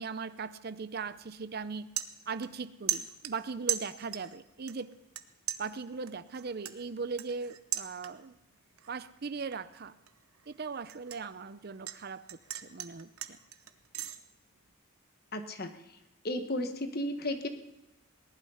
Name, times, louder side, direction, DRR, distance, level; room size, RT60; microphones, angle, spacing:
voice 1, 0.0-1.9 2.3-4.9 5.6-8.3 8.9-9.9 10.5-12.2 12.6-13.4, right 5 dB, 45° right, 15 dB, 0.5 m, -39 dB
sound 1, 1.0-1.2 1.6-2.6 2.9-4.4 4.7-5.2 5.5-8.4 8.8-9.1 9.5-12.0 12.3-14.2, right 12 dB, 85° right, 1.0 m, -37 dB
voice 2, 15.3-15.7 16.2-17.5, left 1 dB, 45° left, 8 dB, 1.4 m, -33 dB
18.5 x 11.5 x 5.7 m, 0.96 s
head